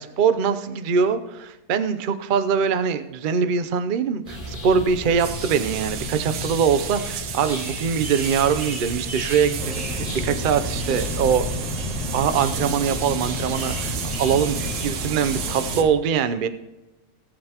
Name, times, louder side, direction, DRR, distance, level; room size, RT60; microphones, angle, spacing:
voice 1, 0.0-11.5 12.1-16.5, right 6 dB, 60° right, 10 dB, 0.5 m, -23 dB
sound 1, 4.2-14.9, left 1 dB, 25° left, 4.3 m, -34 dB
sound 2, 5.2-15.8, right 9 dB, 80° right, 1.2 m, -33 dB
sound 3, 9.5-15.9, left 1 dB, 5° left, 2.6 m, -31 dB
18.5 x 7.7 x 2.9 m, 1.0 s
omnidirectional pair, 1.7 m